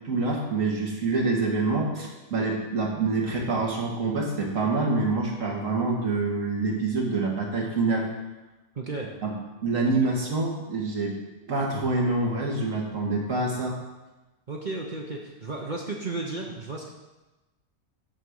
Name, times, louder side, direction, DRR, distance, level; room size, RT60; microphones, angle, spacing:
voice 1, 0.0-8.1 9.2-9.3 9.6-11.1 11.5-13.8, right 3 dB, 65° right, -1 dB, 2.2 m, -26 dB
voice 2, 8.8-9.1 14.5-16.9, right 3 dB, 35° right, -1 dB, 1.0 m, -33 dB
11.5 x 4.4 x 6.4 m, 1.1 s
omnidirectional pair, 1.5 m